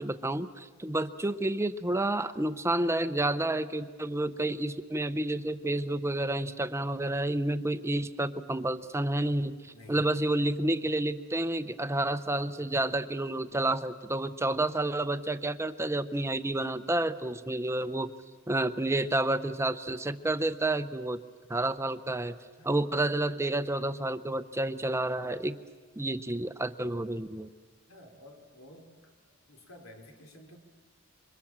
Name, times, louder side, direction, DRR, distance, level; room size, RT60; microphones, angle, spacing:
voice 1, 0.0-18.1 18.5-21.2 21.5-22.3 22.6-25.6 26.0-27.5, right 1 dB, 15° right, 12 dB, 0.7 m, -30 dB
voice 2, 9.7-10.1 17.3-17.5 22.6-23.2 27.9-30.6, left 1 dB, 85° left, 3 dB, 3.6 m, -53 dB
28.0 x 24.0 x 7.3 m, 1.4 s
head